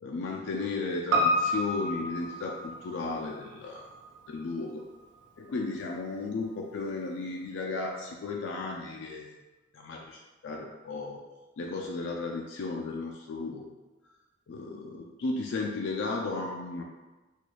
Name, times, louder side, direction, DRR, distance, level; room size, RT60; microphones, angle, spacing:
voice 1, 0.0-3.9 4.3-4.9 5.4-9.3 9.7-11.2 11.6-13.8 14.5-16.8, left 3 dB, 70° left, 0 dB, 0.4 m, -34 dB
Piano, 1.1-5.6 5.9-6.0, equal, 65° right, 0.5 m, -31 dB
4.1 x 2.3 x 3.0 m, 1.1 s
head